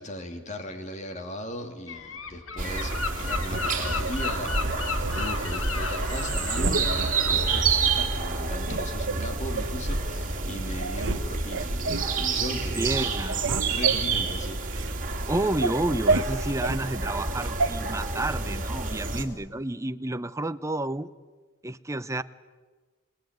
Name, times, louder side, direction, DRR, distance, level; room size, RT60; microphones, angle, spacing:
voice 1, 0.0-4.5 4.8-13.0 13.7-14.9 15.2-15.3, left 1 dB, 35° left, 6 dB, 2.6 m, -38 dB
Gull seagull, 1.9-7.6, left 4 dB, 75° left, 1.9 m, -34 dB
sound 1, 2.6-19.2, right 4 dB, 40° right, 3.0 m, -29 dB
sound 2, 3.5-4.1 4.6-5.6 6.0-6.2 6.5-7.5 8.0-8.1 8.6-9.8 10.4-10.5 10.8-11.2 11.5-12.1 12.6-12.9 13.1-14.9 15.3-16.8 17.6-17.7, right 3 dB, 60° right, 1.1 m, -30 dB
voice 2, 12.7-13.6 15.3-21.1 21.6-22.2, right 1 dB, 15° right, 12 dB, 0.7 m, -30 dB
28.5 x 18.5 x 9.4 m, 1.4 s
head